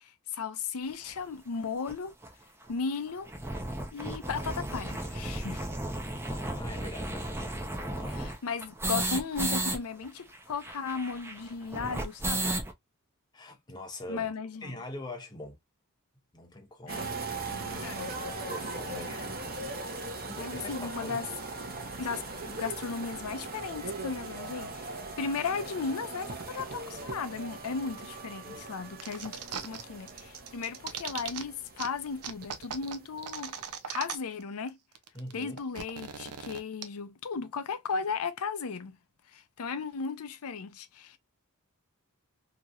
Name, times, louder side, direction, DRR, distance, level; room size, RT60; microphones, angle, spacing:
voice 1, 0.0-2.2 2.7-3.3 3.9-5.7 8.1-12.5 14.1-14.7 16.9-17.1 17.5-18.1 18.9-19.4 20.4-21.3 22.0-33.5 33.9-34.8 35.3-39.0 39.3-41.2, left 5 dB, 75° left, 0.5 m, -36 dB
sound 1, 1.1-1.2 1.9-2.0 2.2-2.3 2.6-2.7 3.1-9.8 10.0-10.1 10.3-12.7, right 1 dB, 10° right, 0.6 m, -34 dB
voice 2, 6.3-8.3 13.3-14.3 14.6-15.6 16.3-17.0 18.5-21.2 22.1-22.2 35.1-35.6, left 1 dB, 20° left, 0.9 m, -44 dB
sound 2, 16.9-33.2 33.4-33.7, right 3 dB, 45° right, 0.8 m, -40 dB
sound 3, 29.0-29.8 30.1-31.4 31.8-31.9 32.2-34.4 34.7-34.8 35.0-36.8, right 7 dB, 85° right, 0.6 m, -39 dB
2.9 x 2.9 x 2.3 m
head